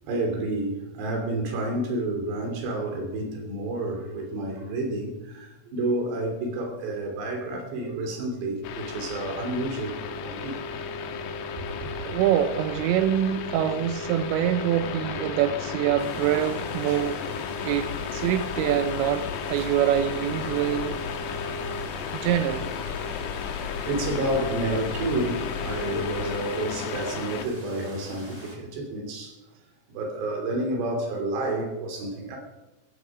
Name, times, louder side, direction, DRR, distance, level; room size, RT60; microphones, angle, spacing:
voice 1, 0.0-10.6 11.5-12.1 16.9-17.0 18.7-18.8 19.6-19.7 21.8-21.9 23.5-23.6 23.9-29.4 29.9-32.4, right 2 dB, 60° right, 5.0 m, -30 dB
sound 1, 8.6-27.4, left 5 dB, 70° left, 2.9 m, -34 dB
voice 2, 12.1-17.3 17.6-21.0 22.1-22.7, right 11 dB, 80° right, 2.7 m, -25 dB
sound 2, 16.0-28.6, equal, 5° right, 2.7 m, -46 dB
sound 3, 17.7-26.4, left 7 dB, 90° left, 1.6 m, -39 dB
15.5 x 15.5 x 5.0 m
omnidirectional pair, 5.8 m